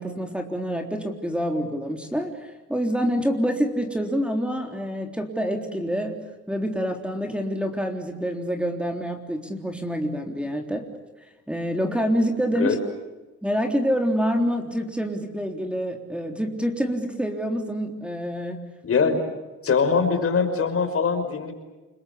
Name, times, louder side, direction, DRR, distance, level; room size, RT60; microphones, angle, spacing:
voice 1, 0.0-6.2 6.5-10.9 11.2-12.8 13.4-18.6, equal, 5° right, 4 dB, 3.6 m, -27 dB
voice 2, 18.8-19.2 19.6-21.5, left 5 dB, 50° left, 7 dB, 5.5 m, -22 dB
30.0 x 21.5 x 8.5 m, 1.2 s
cardioid pair, 90°, 30 cm